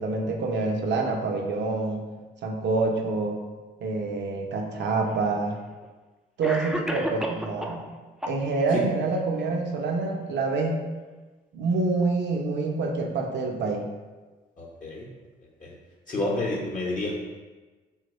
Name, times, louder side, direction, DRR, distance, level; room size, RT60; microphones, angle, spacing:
voice 1, 0.0-2.1 2.4-3.4 3.8-5.6 6.4-7.9 8.3-10.9 11.5-13.9, right 3 dB, 60° right, 2 dB, 0.6 m, -27 dB
Cough, 4.7-4.8 5.8-5.9 6.4-7.8 8.2-8.8, equal, ahead, 0.3 m, -32 dB
voice 2, 14.6-15.1 15.6-15.7 16.1-17.2, left 2 dB, 40° left, -3 dB, 0.8 m, -29 dB
2.8 x 2.1 x 3.9 m, 1.3 s
hypercardioid pair, 45°, 20 cm